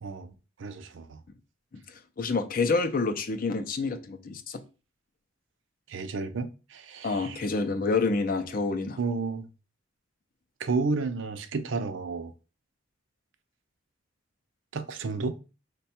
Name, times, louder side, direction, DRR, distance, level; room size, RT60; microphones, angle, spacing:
voice 1, 0.0-1.2 5.9-7.5 9.0-9.5 10.6-12.3 14.7-15.3, right 4 dB, 70° right, 0.5 m, -32 dB
voice 2, 2.2-4.6 7.0-9.0, left 3 dB, 45° left, 0.5 m, -28 dB
5.2 x 2.3 x 4.2 m
head